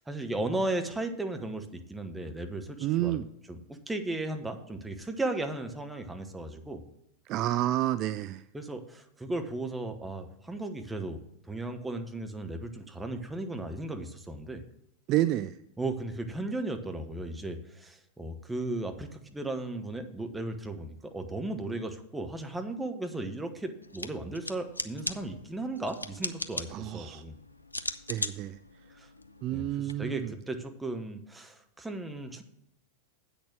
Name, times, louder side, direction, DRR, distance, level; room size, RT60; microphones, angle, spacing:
voice 1, 0.0-6.8 8.5-11.2 11.5-14.6 15.8-27.4 29.0-29.1 29.5-32.4, right 2 dB, 10° right, 5 dB, 1.1 m, -36 dB
voice 2, 2.8-3.3 7.3-8.4 15.1-15.6 26.7-27.2 28.1-28.6 29.4-30.3, right 14 dB, 40° right, 13 dB, 0.3 m, -29 dB
sound 1, 23.8-29.9, left 2 dB, 85° left, 0.5 m, -39 dB
8.3 x 6.4 x 6.1 m, 0.77 s
figure-of-eight pair, 90°, 0 cm